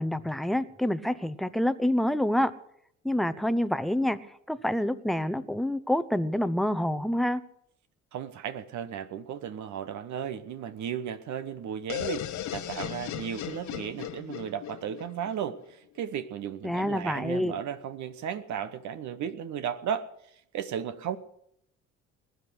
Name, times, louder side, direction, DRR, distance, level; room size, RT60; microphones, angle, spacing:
voice 1, 0.0-2.5 3.0-4.2 4.5-7.4 16.6-17.5, left 1 dB, ahead, 14 dB, 0.9 m, -27 dB
voice 2, 8.1-20.1 20.5-21.2, right 8 dB, 50° right, 12 dB, 1.0 m, -35 dB
sound 1, 11.9-15.7, left 12 dB, 50° left, 1.1 m, -37 dB
20.5 x 10.5 x 6.3 m, 0.72 s
figure-of-eight pair, 50°, 37 cm